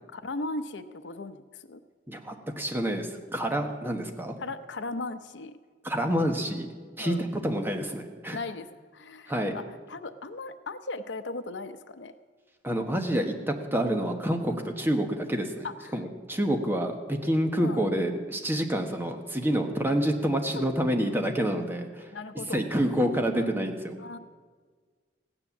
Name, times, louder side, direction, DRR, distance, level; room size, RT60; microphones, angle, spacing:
voice 1, 0.1-1.8 4.4-5.5 7.0-7.2 8.3-12.1 15.6-16.0 17.6-17.8 20.5-20.7 22.1-22.6 23.4-23.5 24.0-24.2, left 3 dB, 80° left, 11 dB, 0.7 m, -37 dB
voice 2, 2.1-4.4 5.8-6.7 7.0-8.4 9.3-9.5 12.6-15.6 15.9-22.1 22.5-23.9, equal, 10° right, 4 dB, 1.3 m, -28 dB
16.0 x 9.8 x 7.2 m, 1.5 s
head